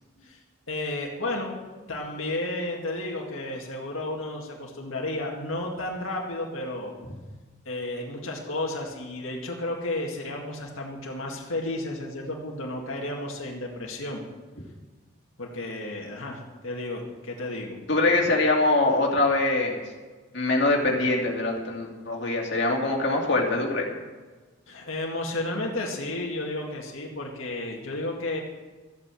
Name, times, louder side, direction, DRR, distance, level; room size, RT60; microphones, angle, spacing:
voice 1, 0.7-1.5 1.9-6.9 7.7-14.2 15.4-17.8 24.7-28.4, left 2 dB, 90° left, -1 dB, 2.0 m, -32 dB
voice 2, 17.9-19.8 20.3-23.9, left 2 dB, 60° left, -1 dB, 2.5 m, -23 dB
14.0 x 8.6 x 7.7 m, 1.3 s
head